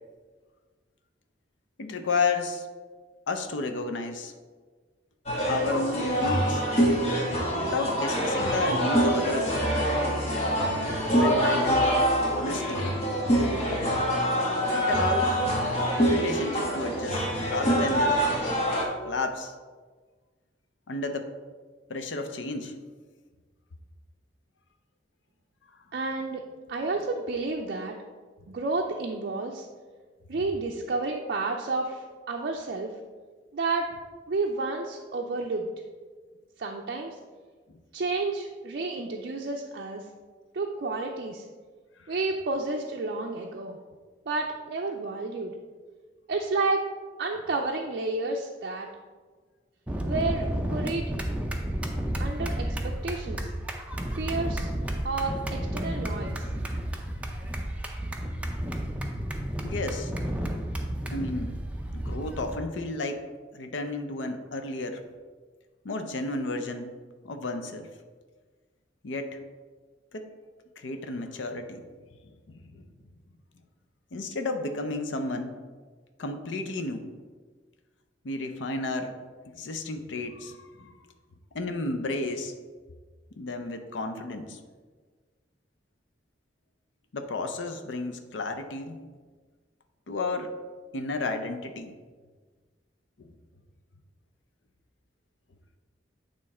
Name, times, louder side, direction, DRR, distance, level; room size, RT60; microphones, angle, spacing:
voice 1, 1.8-2.7 3.3-4.3 5.4-6.6 7.6-9.6 11.2-12.0 12.3-12.9 14.8-15.4 16.1-18.3 19.0-19.5 20.9-21.3 21.9-22.8 30.3-30.4 37.7-37.8 59.6-60.1 61.1-61.6 61.9-63.2 63.5-65.0 65.8-66.9 67.2-67.9 69.0-69.4 70.1-70.3 70.8-71.8 72.5-72.9 74.1-75.6 76.2-77.1 78.2-79.1 79.4-80.9 81.5-82.5 83.4-84.6 87.1-89.0 90.1-90.5 90.9-92.0 93.2-93.3, left 3 dB, 75° left, 6 dB, 0.6 m, -32 dB
sound 1, 5.3-18.8, equal, 35° left, 1.2 m, -25 dB
voice 2, 25.9-26.4 26.7-27.9 28.5-29.7 30.3-32.9 33.5-33.9 34.3-35.7 36.6-37.2 37.9-40.0 40.5-41.4 42.1-43.8 44.3-45.5 46.3-46.8 47.2-48.9 50.0-51.1 52.2-53.5 54.1-54.7 55.0-56.5, right 3 dB, 55° right, 0 dB, 0.5 m, -30 dB
sound 2, 49.9-62.5, right 1 dB, 5° right, 0.5 m, -32 dB
8.5 x 3.1 x 4.2 m, 1.4 s
head